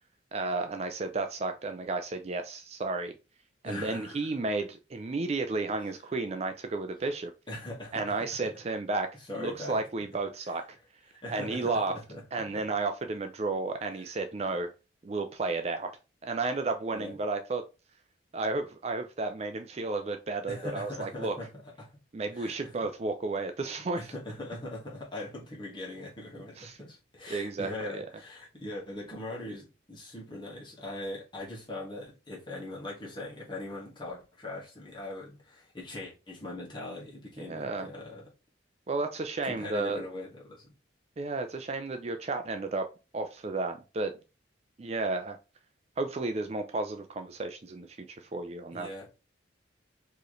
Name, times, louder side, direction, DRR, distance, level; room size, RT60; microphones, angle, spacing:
voice 1, 0.3-3.1 3.6-7.3 7.9-10.6 11.3-11.9 12.3-14.7 15.0-15.9 16.2-17.6 18.3-21.4 22.1-24.0 26.6-26.8 27.3-28.1 37.4-37.9 38.9-40.0 41.2-44.2 44.8-45.4 46.0-48.9, right 3 dB, 35° right, 0.4 m, -32 dB
voice 2, 3.6-4.3 7.5-8.3 9.3-9.8 11.1-12.2 16.9-17.1 20.5-21.5 21.8-22.0 22.3-22.7 23.9-38.2 39.4-40.7 48.7-49.1, left 1 dB, 25° left, 1.6 m, -41 dB
4.6 x 3.1 x 3.1 m
head